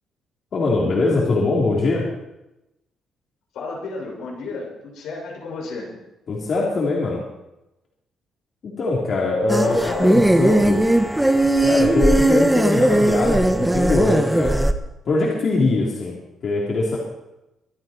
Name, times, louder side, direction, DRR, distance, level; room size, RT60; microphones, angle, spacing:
voice 1, 0.5-2.0 6.3-7.2 8.6-10.8 11.6-14.5 15.1-16.1 16.4-17.0, left 3 dB, 55° left, -4 dB, 4.0 m, -22 dB
voice 2, 3.5-5.9 9.6-10.1, left 3 dB, 85° left, -2 dB, 6.7 m, -32 dB
sound 1, 9.5-14.7, right 1 dB, 10° right, 1.2 m, -18 dB
25.0 x 9.4 x 4.7 m, 0.93 s
cardioid pair, 90°, 0 cm